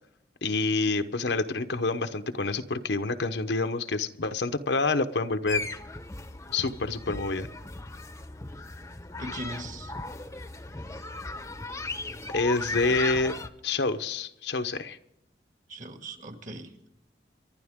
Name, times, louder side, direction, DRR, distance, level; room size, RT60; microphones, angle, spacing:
voice 1, 0.4-5.7 6.5-7.5 12.3-13.3 13.6-15.0, left 3 dB, 75° left, 9 dB, 0.9 m, -27 dB
sound 1, 5.5-13.5, left 3 dB, 15° left, 0.8 m, -36 dB
voice 2, 9.2-9.9 12.9-13.0 15.7-16.9, right 1 dB, 45° right, 5 dB, 2.0 m, -39 dB
25.5 x 12.0 x 3.6 m, 0.85 s
head